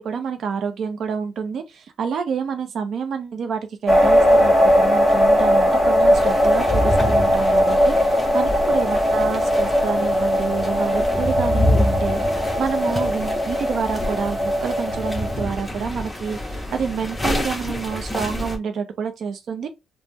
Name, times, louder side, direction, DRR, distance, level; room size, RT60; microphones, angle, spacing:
voice 1, 0.0-19.7, right 6 dB, 65° right, 0.5 m, -28 dB
sound 1, 3.9-15.4, equal, 10° right, 1.3 m, -19 dB
sound 2, 6.1-18.6, left 1 dB, 15° left, 0.8 m, -27 dB
3.4 x 2.0 x 2.7 m
cardioid pair, 90°, 0 cm